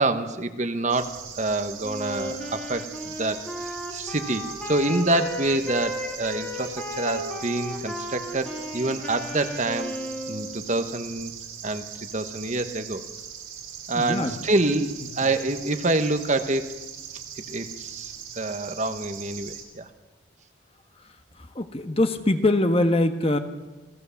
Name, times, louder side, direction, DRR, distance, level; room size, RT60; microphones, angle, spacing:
voice 1, 0.0-9.9 10.3-11.3 11.6-11.9 12.1-13.0 13.9-16.7 17.5-19.9, right 2 dB, 35° right, 9 dB, 1.2 m, -27 dB
sound 1, 0.9-19.6, right 8 dB, 80° right, 4.3 m, -40 dB
Wind instrument woodwind instrument, 1.8-10.7, left 1 dB, 5° left, 3.1 m, -35 dB
voice 2, 13.9-14.3 21.5-23.4, left 1 dB, 30° left, 7 dB, 1.3 m, -22 dB
28.0 x 16.5 x 7.1 m, 1.1 s
head